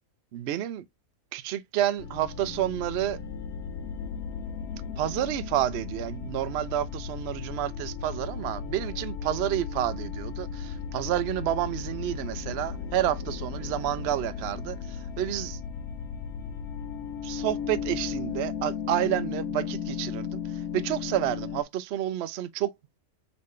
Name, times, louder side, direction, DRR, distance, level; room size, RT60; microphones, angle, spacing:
voice 1, 0.3-0.8 1.3-3.2 5.0-15.6 17.2-22.7, right 12 dB, 65° right, 0.6 m, -30 dB
sound 1, 2.0-21.6, left 6 dB, 85° left, 1.1 m, -35 dB
4.0 x 3.2 x 3.6 m
omnidirectional pair, 1.6 m